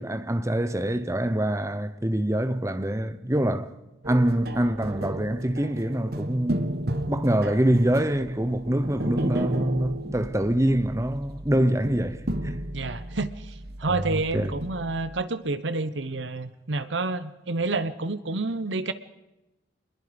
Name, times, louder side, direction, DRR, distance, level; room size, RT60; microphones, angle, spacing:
voice 1, 0.0-3.7 4.1-6.8 7.1-12.6 13.8-14.5, right 1 dB, 15° right, 0.8 m, -25 dB
sound 1, 4.0-15.2, right 1 dB, 55° right, 1.4 m, -34 dB
voice 2, 12.7-18.9, right 3 dB, 85° right, 1.1 m, -29 dB
25.0 x 21.0 x 5.2 m
head